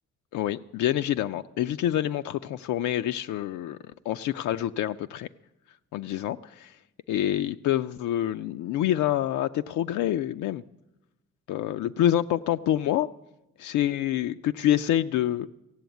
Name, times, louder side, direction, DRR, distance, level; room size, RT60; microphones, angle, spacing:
voice 1, 0.3-3.8 4.0-5.3 5.9-6.8 7.1-10.6 11.5-13.1 13.6-15.5, left 12 dB, 75° left, 9 dB, 0.5 m, -27 dB
15.5 x 7.0 x 9.2 m, 0.96 s
cardioid pair, 90°, 30 cm